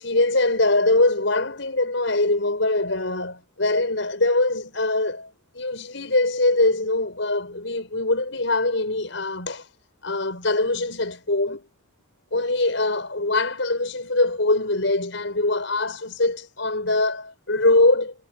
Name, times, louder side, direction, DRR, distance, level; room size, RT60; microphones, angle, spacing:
voice 1, 0.0-9.7 10.0-11.6 12.3-18.1, left 2 dB, 75° left, 5.9 m, -23 dB
head